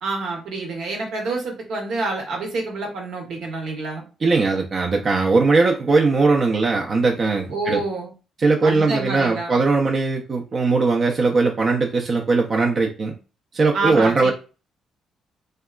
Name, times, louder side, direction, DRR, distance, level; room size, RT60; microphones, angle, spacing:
voice 1, 0.0-4.0 7.5-8.1 8.6-9.6 13.7-14.3, right 3 dB, 80° right, 0 dB, 0.9 m, -27 dB
voice 2, 4.2-7.8 8.4-13.2 13.5-14.3, right 3 dB, 45° right, 0 dB, 0.4 m, -19 dB
2.8 x 2.2 x 2.3 m, 0.33 s
cardioid pair, 90°, 0 cm